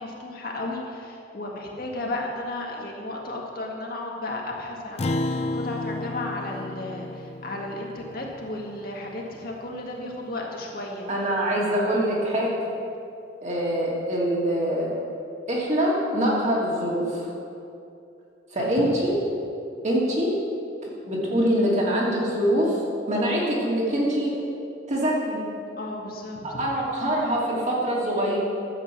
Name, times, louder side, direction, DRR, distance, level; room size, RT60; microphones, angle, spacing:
voice 1, 0.0-11.3 18.6-18.9 25.8-26.6, left 2 dB, 50° left, -1 dB, 1.8 m, -34 dB
Acoustic guitar, 5.0-9.7, left 2 dB, 35° left, 0.5 m, -32 dB
voice 2, 11.1-12.6 13.4-14.9 15.5-17.3 18.5-19.1 19.8-20.4 20.8-22.8 23.1-24.4 24.9-25.4 26.6-28.4, equal, 40° right, -4 dB, 2.8 m, -24 dB
11.5 x 8.2 x 7.3 m, 2.6 s
head